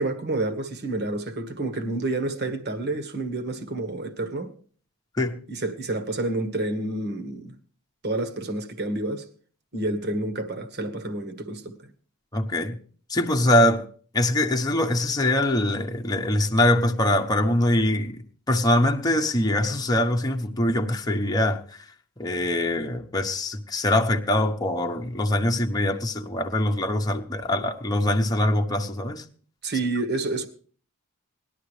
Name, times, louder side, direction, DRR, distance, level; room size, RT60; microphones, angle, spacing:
voice 1, 0.0-4.5 5.5-7.5 8.0-9.3 9.7-11.9 29.6-30.5, right 2 dB, 50° right, 1.6 m, -29 dB
voice 2, 12.3-12.8 13.1-13.9 14.1-21.9 22.2-29.2, left 1 dB, 20° left, 1.0 m, -23 dB
19.5 x 12.0 x 3.3 m
head